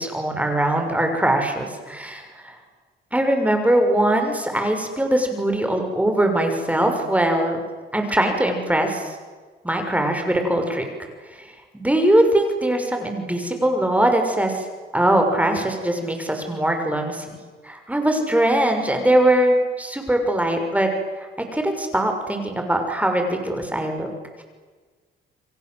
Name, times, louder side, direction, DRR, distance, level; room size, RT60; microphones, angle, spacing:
voice 1, 0.0-2.5 3.1-7.6 7.9-9.1 9.6-10.8 11.7-14.6 14.9-17.2 17.6-20.9 21.2-21.3 21.5-24.1, right 1 dB, 5° right, 4 dB, 6.5 m, -21 dB
30.0 x 23.5 x 8.1 m, 1.4 s
cardioid pair, 90°, 20 cm